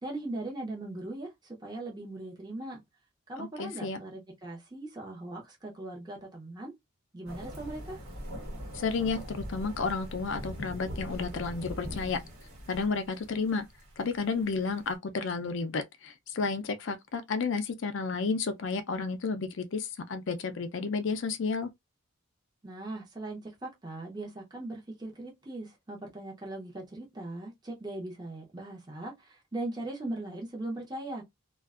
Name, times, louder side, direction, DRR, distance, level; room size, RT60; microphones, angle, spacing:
voice 1, 0.0-2.8 3.3-6.7 7.1-8.0 22.6-31.2, right 2 dB, 20° right, 0.6 m, -39 dB
voice 2, 3.4-4.0 8.7-12.2 12.7-13.7 14.0-21.7, left 4 dB, 55° left, 0.4 m, -32 dB
sound 1, 7.3-14.9, equal, 65° right, 1.0 m, -42 dB
2.5 x 2.2 x 2.3 m
head